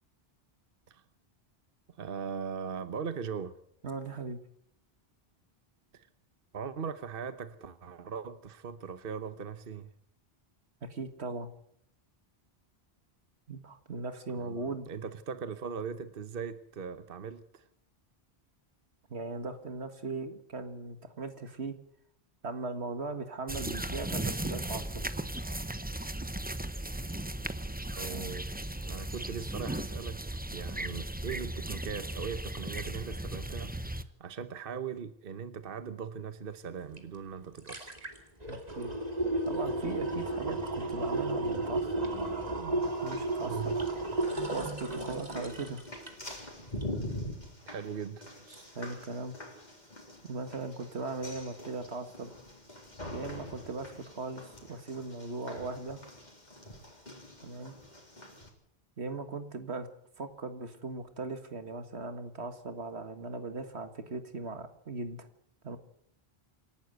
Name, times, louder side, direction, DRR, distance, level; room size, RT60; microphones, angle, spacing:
voice 1, 2.0-3.6 5.9-6.1 6.5-9.9 14.3-17.6 27.9-30.2 30.5-33.8 34.2-38.0 43.4-43.8 47.7-48.3, right 6 dB, 60° right, 11 dB, 1.1 m, -39 dB
voice 2, 3.8-4.4 10.8-11.5 13.5-14.9 19.1-21.8 22.4-25.3 28.1-28.3 38.5-38.9 39.5-42.0 42.5-43.8 44.5-45.8 48.5-49.4 50.2-52.3 53.1-56.0 57.4-57.7 59.0-59.9 60.2-65.3 65.6-65.8, right 3 dB, 90° right, 9 dB, 2.0 m, -39 dB
sound 1, 23.5-34.0, right 1 dB, 10° right, 0.8 m, -36 dB
sound 2, 37.0-37.1 37.4-46.4 46.8-46.9, right 2 dB, 40° right, 2.6 m, -33 dB
sound 3, 42.8-58.5, left 1 dB, 45° left, 3.9 m, -45 dB
27.5 x 12.0 x 8.0 m, 0.72 s
omnidirectional pair, 1.1 m